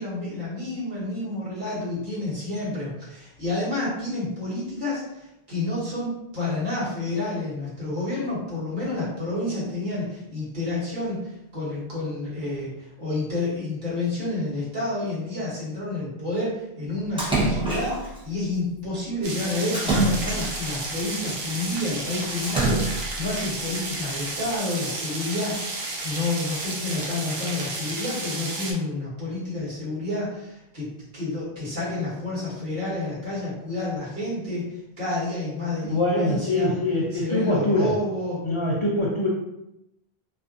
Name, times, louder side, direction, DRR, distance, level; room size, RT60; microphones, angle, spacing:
voice 1, 0.0-30.9 31.1-36.8 37.1-38.4, left 2 dB, 55° right, -9 dB, 1.4 m, -29 dB
Splash splatter, 17.2-18.2 19.7-20.8 22.4-23.2, right 2 dB, 5° right, 0.5 m, -25 dB
sound 1, 19.2-28.7, right 2 dB, 85° right, 0.8 m, -32 dB
voice 2, 35.8-37.9 38.4-39.3, left 1 dB, 55° left, -5 dB, 0.3 m, -23 dB
2.5 x 2.4 x 2.4 m, 0.87 s
omnidirectional pair, 1.0 m